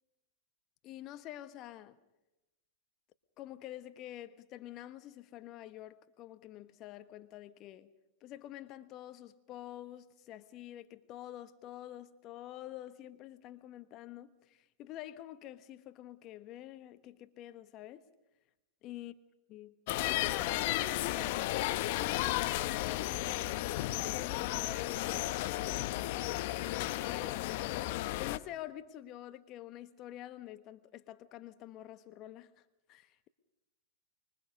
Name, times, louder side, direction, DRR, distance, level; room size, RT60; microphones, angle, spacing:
voice 1, 0.8-2.0 3.4-7.9 8.2-18.0 18.8-19.1 19.5-19.8 20.0-26.4 27.0-33.3, left 13 dB, 40° left, 1.3 m, -47 dB
sound 1, 19.9-28.4, left 17 dB, 55° left, 0.9 m, -34 dB
25.5 x 23.0 x 5.5 m
hypercardioid pair, 105°, 0 cm